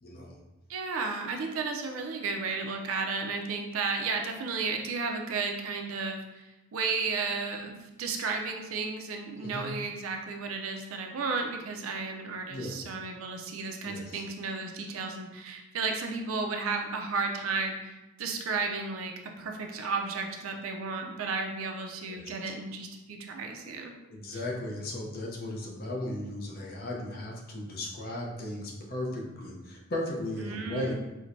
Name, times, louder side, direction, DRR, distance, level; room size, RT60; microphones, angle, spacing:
voice 1, 0.0-0.4 9.4-9.7 12.5-12.8 13.8-14.2 22.1-22.3 24.1-30.9, left 1 dB, 45° left, -2 dB, 0.6 m, -36 dB
voice 2, 0.7-6.4 6.7-23.9 30.4-30.9, right 4 dB, 65° right, 3 dB, 0.4 m, -33 dB
4.3 x 2.1 x 2.6 m, 1.0 s
head